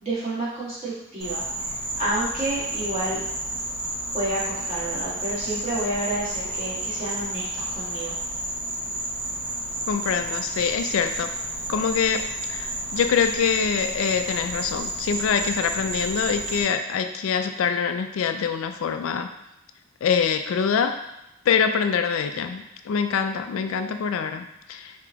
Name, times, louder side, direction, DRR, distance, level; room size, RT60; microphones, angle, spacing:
voice 1, 0.0-1.4 2.0-3.2 4.1-8.1 23.7-23.8, right 2 dB, 30° right, -8 dB, 1.6 m, -29 dB
Insect, 1.2-16.6, right 1 dB, 65° right, 1.2 m, -31 dB
voice 2, 9.9-11.3 11.7-19.3 20.0-21.0 21.5-24.9, left 6 dB, 70° left, 7 dB, 0.3 m, -25 dB
5.0 x 2.9 x 3.5 m, 0.88 s
head